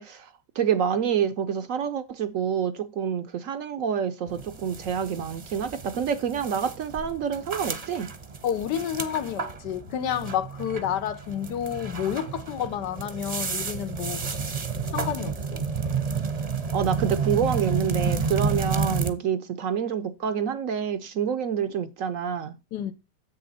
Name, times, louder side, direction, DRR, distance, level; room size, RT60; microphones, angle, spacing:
voice 1, 0.0-8.1 16.7-22.6, right 8 dB, 65° right, 0.9 m, -27 dB
sound 1, 4.3-19.1, right 5 dB, 30° right, 0.7 m, -31 dB
voice 2, 8.4-14.2 14.9-15.6 22.7-22.9, left 9 dB, 85° left, 1.4 m, -30 dB
8.0 x 6.7 x 4.1 m
omnidirectional pair, 1.8 m